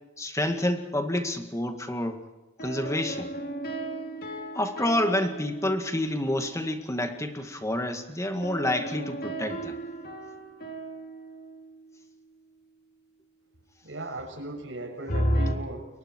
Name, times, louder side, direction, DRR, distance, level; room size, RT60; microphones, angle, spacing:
voice 1, 0.2-2.2 2.6-3.3 4.5-9.7, left 1 dB, 15° left, 6 dB, 2.1 m, -28 dB
sound 1, 2.6-6.4 8.4-11.9 15.1-15.5, right 1 dB, 55° left, 3.1 m, -33 dB
voice 2, 13.8-15.9, right 2 dB, 90° right, 3 dB, 6.6 m, -37 dB
29.5 x 23.0 x 4.7 m, 1.1 s
head